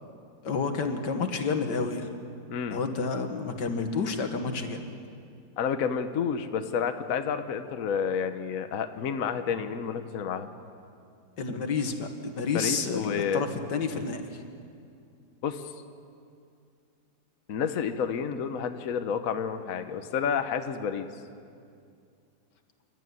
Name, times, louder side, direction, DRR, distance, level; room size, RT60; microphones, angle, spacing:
voice 1, 0.4-2.1 2.7-4.9 11.4-14.2, left 4 dB, 85° left, 6 dB, 2.2 m, -30 dB
voice 2, 2.5-2.8 5.6-10.5 12.5-13.4 15.4-15.7 17.5-21.1, left 7 dB, 55° left, 8 dB, 1.3 m, -30 dB
28.5 x 12.5 x 9.4 m, 2.4 s
omnidirectional pair, 1.8 m